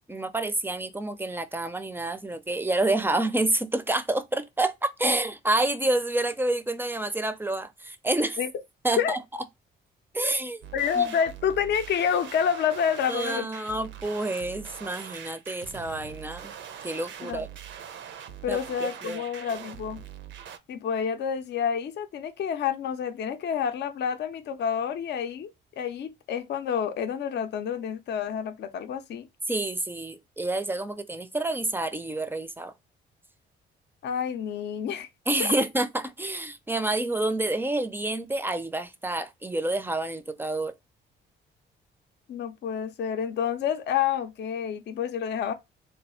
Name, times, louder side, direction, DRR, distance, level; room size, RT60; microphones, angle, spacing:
voice 1, 0.1-8.4 8.8-9.2 10.1-10.6 11.0-11.1 13.1-16.5 16.8-17.5 18.5-19.2 29.5-32.7 35.3-40.7, right 2 dB, 10° right, 0.4 m, -28 dB
sound 1, 10.6-20.6, right 9 dB, 70° right, 0.6 m, -43 dB
voice 2, 10.7-13.5 17.2-17.4 18.4-20.0 20.7-25.5 25.8-29.3 34.0-35.1 35.4-35.5 42.3-45.5, left 8 dB, 60° left, 0.5 m, -28 dB
3.3 x 2.3 x 4.2 m
cardioid pair, 90°, 20 cm